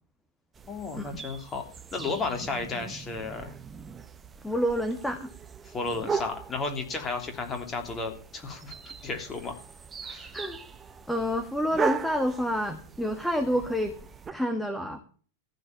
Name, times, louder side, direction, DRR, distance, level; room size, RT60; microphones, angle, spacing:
sound 1, 0.5-14.3, right 5 dB, 20° right, 1.0 m, -38 dB
voice 1, 0.7-1.6 1.9-3.5 5.6-9.5 10.0-10.3, left 3 dB, 20° left, 4 dB, 3.1 m, -33 dB
voice 2, 4.4-5.3 10.3-10.6 11.1-14.0 14.3-15.0, equal, 5° left, 7 dB, 1.6 m, -28 dB
15.0 x 5.1 x 8.8 m, 0.42 s
figure-of-eight pair, 90°, 0 cm